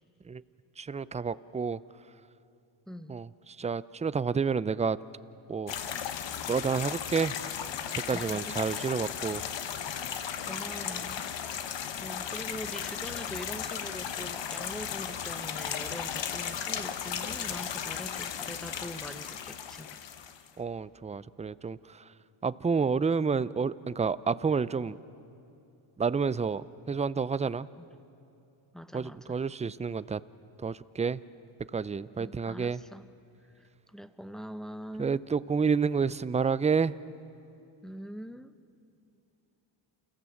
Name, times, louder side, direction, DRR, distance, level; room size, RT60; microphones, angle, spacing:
voice 1, 0.8-1.8 3.1-3.3 3.6-5.0 5.5-5.7 6.5-7.4 8.1-9.4 20.6-22.0 22.4-25.0 26.0-27.7 28.9-30.2 30.6-31.2 31.7-32.8 35.0-37.0, right 5 dB, 15° right, 17 dB, 0.4 m, -29 dB
voice 2, 2.9-3.2 8.0-8.8 10.5-20.1 27.8-27.9 28.7-29.4 32.2-33.1 33.6-35.2 37.8-38.5, equal, ahead, 11 dB, 0.8 m, -43 dB
sound 1, 5.7-20.5, left 8 dB, 60° left, 1.2 m, -36 dB
28.5 x 15.5 x 7.2 m, 2.7 s
cardioid pair, 70°, 49 cm